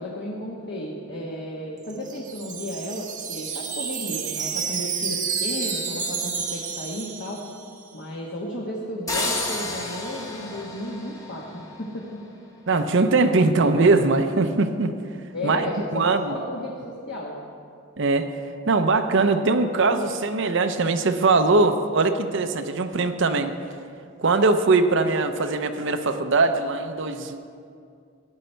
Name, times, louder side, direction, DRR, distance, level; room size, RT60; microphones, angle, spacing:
voice 1, 0.0-7.4 7.9-12.2 15.3-17.4, left 1 dB, 55° left, -3 dB, 1.3 m, -33 dB
Wind chime, 1.8-7.8, right 6 dB, 40° right, 1.1 m, -30 dB
sound 1, 9.1-11.9, left 2 dB, 15° left, 1.1 m, -31 dB
voice 2, 12.7-14.9 15.4-15.6 15.9-16.4 18.0-18.3 18.7-23.5 24.2-27.5, right 3 dB, 60° right, 8 dB, 0.7 m, -21 dB
15.0 x 9.6 x 4.5 m, 2.3 s
head